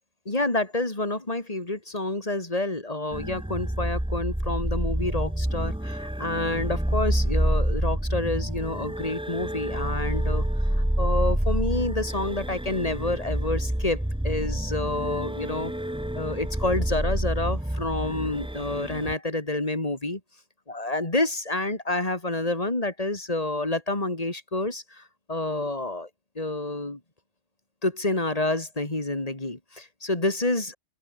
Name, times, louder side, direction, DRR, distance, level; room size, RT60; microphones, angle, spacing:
voice 1, 0.2-10.4 11.0-15.7 16.1-20.2 20.7-25.0 25.3-26.1 26.3-27.0 27.8-30.8, left 2 dB, 30° left, 3.3 m, -28 dB
sound 1, 3.1-19.1, right 1 dB, 5° right, 1.1 m, -28 dB
open air
omnidirectional pair, 1.2 m